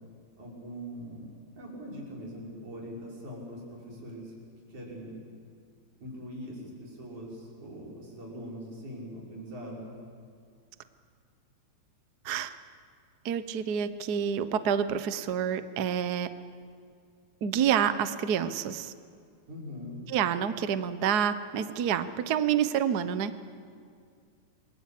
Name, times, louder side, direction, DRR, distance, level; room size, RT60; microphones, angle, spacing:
voice 1, 0.4-1.3 1.6-4.3 4.7-5.2 6.0-9.9 19.5-20.0, equal, 90° right, -4 dB, 7.6 m, -42 dB
voice 2, 13.2-16.3 17.4-18.9 20.1-23.3, right 8 dB, 70° right, 11 dB, 0.9 m, -28 dB
27.5 x 22.5 x 8.5 m, 2.2 s
omnidirectional pair, 3.3 m